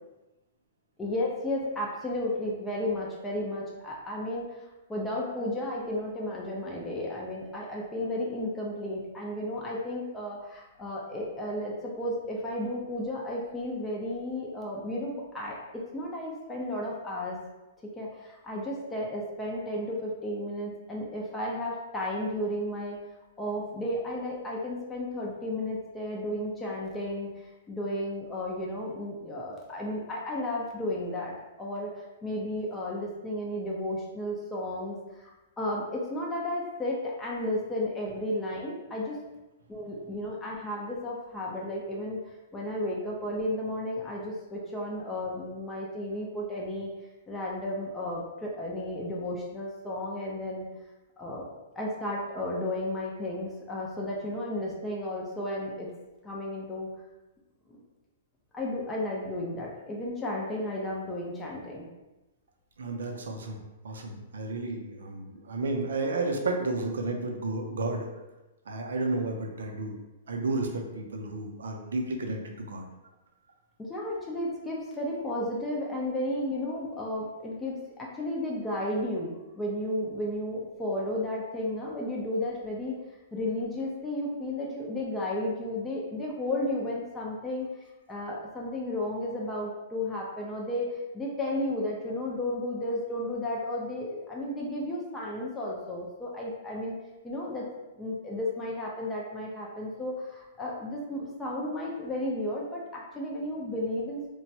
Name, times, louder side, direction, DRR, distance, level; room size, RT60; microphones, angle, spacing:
voice 1, 1.0-17.4 18.0-23.0 23.4-31.9 32.2-39.2 39.7-46.9 47.3-50.7 51.2-51.5 51.8-55.9 56.2-56.9 57.7-57.8 58.5-61.9 73.8-83.0 83.3-87.7 88.1-96.9 97.2-97.7 98.0-104.3, left 1 dB, 10° left, -4 dB, 0.5 m, -33 dB
voice 2, 62.8-63.6 63.8-68.1 68.7-70.0 70.3-72.9, right 2 dB, 85° right, 3 dB, 0.5 m, -32 dB
3.0 x 2.2 x 2.7 m, 1.0 s
hypercardioid pair, 145°, 0 cm